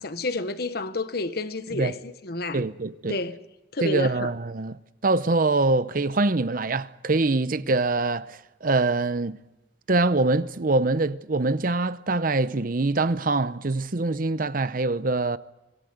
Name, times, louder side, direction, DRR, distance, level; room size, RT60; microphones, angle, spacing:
voice 1, 0.0-2.6 3.1-3.4 3.7-4.3, left 2 dB, 55° left, 1.1 m, -30 dB
voice 2, 2.5-3.2 3.8-9.4 9.9-15.4, right 3 dB, 50° right, 0.8 m, -24 dB
25.5 x 17.0 x 8.0 m
head